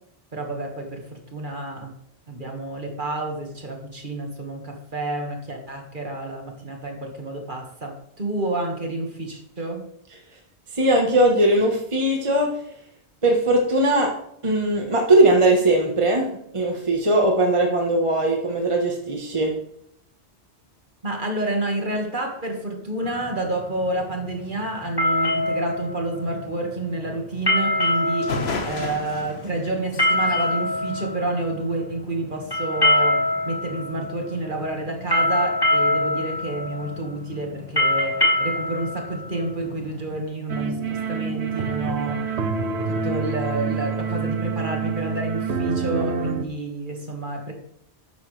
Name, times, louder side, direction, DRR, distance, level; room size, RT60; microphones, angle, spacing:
voice 1, 0.3-1.9 2.3-9.9 21.0-42.2 42.9-47.5, right 2 dB, 45° right, 2 dB, 2.0 m, -29 dB
voice 2, 10.7-12.6 13.2-14.2 14.4-19.5, right 1 dB, 30° right, 1 dB, 1.4 m, -19 dB
sound 1, 23.0-40.2, left 1 dB, 20° left, 2.1 m, -25 dB
sound 2, 27.8-27.9 28.2-31.7, left 3 dB, 65° left, 1.5 m, -33 dB
sound 3, 40.5-46.5, right 5 dB, 75° right, 1.2 m, -27 dB
12.5 x 9.2 x 3.4 m, 0.72 s
omnidirectional pair, 1.1 m